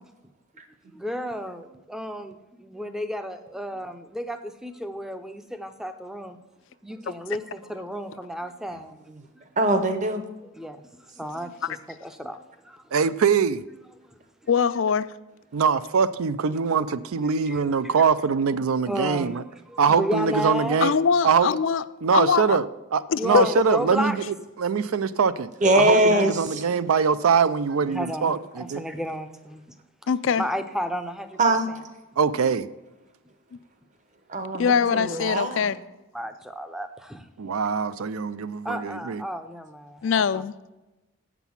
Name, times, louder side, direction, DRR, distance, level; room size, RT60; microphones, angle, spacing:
voice 1, 0.9-6.4 6.8-8.9 10.5-12.9 14.0-14.5 17.5-18.1 18.9-19.4 19.7-20.8 23.1-24.2 27.9-29.8 30.4-31.4 34.8-35.1 36.1-37.3 38.6-40.4, equal, ahead, 0.5 m, -33 dB
voice 2, 9.6-10.2 25.6-26.6 31.4-31.7 34.3-35.7, right 1 dB, 35° right, 0.9 m, -22 dB
voice 3, 12.9-13.6 15.5-19.4 19.8-20.9 21.2-21.5 22.0-22.7 22.9-24.2 24.6-25.5 25.8-28.8 32.2-32.7 37.4-39.2, right 6 dB, 75° right, 0.4 m, -23 dB
voice 4, 14.5-15.1 20.8-21.8 22.1-22.6 23.1-23.4 26.1-26.3 30.1-30.4 34.6-35.8 40.0-40.5, left 6 dB, 60° left, 0.3 m, -22 dB
8.1 x 6.0 x 7.1 m
head